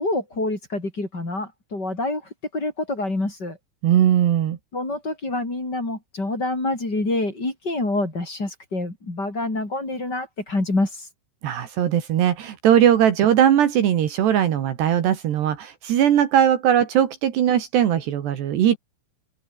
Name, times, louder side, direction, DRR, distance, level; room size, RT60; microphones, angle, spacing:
voice 1, 0.0-2.2 2.5-3.6 4.7-11.1, left 2 dB, 20° left, 5.8 m, -26 dB
voice 2, 3.8-4.6 11.4-18.8, right 10 dB, 65° right, 3.9 m, -19 dB
omnidirectional pair, 5.5 m